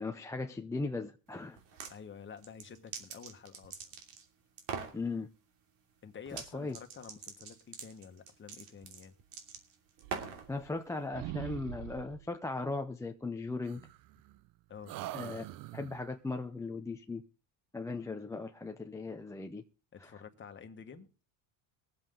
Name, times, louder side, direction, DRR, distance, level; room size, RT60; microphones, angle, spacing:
voice 1, 0.0-1.6 4.9-5.3 6.3-6.8 10.5-13.8 15.1-15.4 15.7-17.2 17.7-19.6 20.0-20.2, left 3 dB, 5° left, 0.6 m, -38 dB
sound 1, 1.6-1.9 2.4-4.2 4.6-5.0 6.3-6.5 6.7-10.5, right 6 dB, 80° right, 3.0 m, -43 dB
voice 2, 1.9-3.9 6.0-9.1 14.7-14.9 19.9-21.1, left 6 dB, 25° left, 1.5 m, -50 dB
sound 2, 10.0-10.9 11.1-12.3 13.6-14.5 14.9-16.1, right 15 dB, 50° right, 0.6 m, -44 dB
21.5 x 7.6 x 3.8 m
cardioid pair, 130°, 44 cm